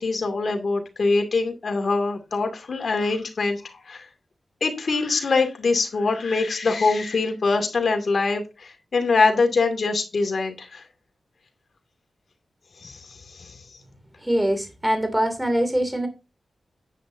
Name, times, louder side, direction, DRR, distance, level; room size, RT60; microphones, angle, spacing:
voice 1, 0.0-4.1 4.6-10.8 12.8-13.8, left 3 dB, 65° left, 5 dB, 2.5 m, -24 dB
voice 2, 14.2-16.1, equal, 10° right, 6 dB, 2.8 m, -23 dB
9.9 x 9.3 x 2.8 m, 0.27 s
wide cardioid pair, 80°, 0 cm